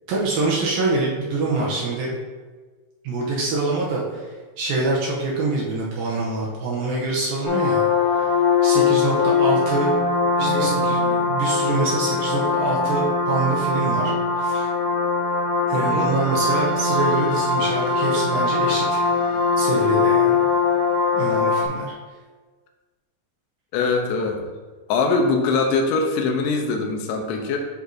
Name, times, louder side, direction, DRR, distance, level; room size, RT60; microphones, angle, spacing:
voice 1, 0.1-2.2 3.0-7.8 8.2-8.3 8.6-10.0 10.4-14.7 15.7-19.0 19.3-20.4 21.1-21.9, right 3 dB, 80° right, -4 dB, 2.3 m, -25 dB
voice 2, 1.4-1.7 10.4-10.7 12.7-12.9 15.7-16.1 23.7-24.5 24.9-27.6, left 4 dB, 85° left, 3 dB, 3.0 m, -23 dB
sound 1, 7.5-21.7, left 4 dB, 55° left, 2.3 m, -21 dB
10.0 x 4.0 x 2.6 m, 1.4 s
omnidirectional pair, 4.8 m